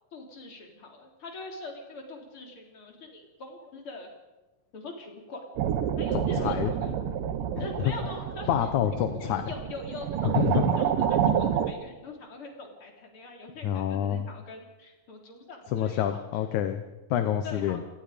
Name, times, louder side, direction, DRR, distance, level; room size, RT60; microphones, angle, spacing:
voice 1, 0.1-4.1 4.7-5.4 6.0-7.0 7.6-8.5 8.9-16.2 17.4-17.8, left 3 dB, 40° left, 2 dB, 4.1 m, -43 dB
sound 1, 5.6-11.7, right 9 dB, 90° right, 2.9 m, -28 dB
voice 2, 6.1-6.7 7.6-7.9 8.5-9.4 10.4-10.7 13.6-14.3 15.7-16.8 17.1-17.8, left 10 dB, 70° left, 8 dB, 2.3 m, -27 dB
28.5 x 18.0 x 5.1 m, 1.1 s
omnidirectional pair, 3.7 m